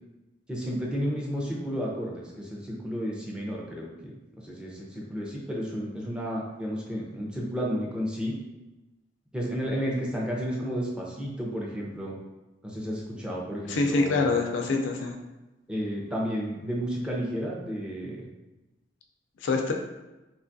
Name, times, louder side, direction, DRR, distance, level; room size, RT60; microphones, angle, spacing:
voice 1, 0.5-4.1 4.4-8.3 9.3-12.1 12.6-14.4 15.7-18.3, equal, 5° right, -4 dB, 0.5 m, -32 dB
voice 2, 13.7-15.1 19.4-19.7, left 3 dB, 80° left, 3 dB, 0.4 m, -25 dB
3.0 x 2.3 x 2.6 m, 1.1 s
head